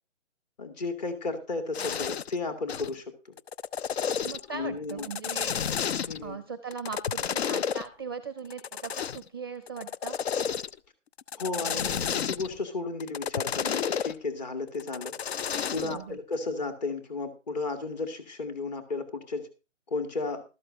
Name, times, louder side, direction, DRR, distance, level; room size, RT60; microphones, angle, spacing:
voice 1, 0.6-3.3 4.5-5.1 6.1-6.4 11.4-15.1 15.7-19.5 19.9-20.4, left 3 dB, 35° left, 7 dB, 2.4 m, -34 dB
sound 1, 1.7-2.4 2.7-2.9 3.4-4.5 4.9-6.3 6.7-7.8 8.5-9.3 9.7-10.8 11.2-12.6 13.0-14.1 14.8-16.0, left 7 dB, 60° left, 0.5 m, -31 dB
voice 2, 4.2-10.2 15.8-16.2, right 5 dB, 20° right, 11 dB, 0.6 m, -39 dB
13.0 x 13.0 x 2.7 m, 0.30 s
hypercardioid pair, 165°, 37 cm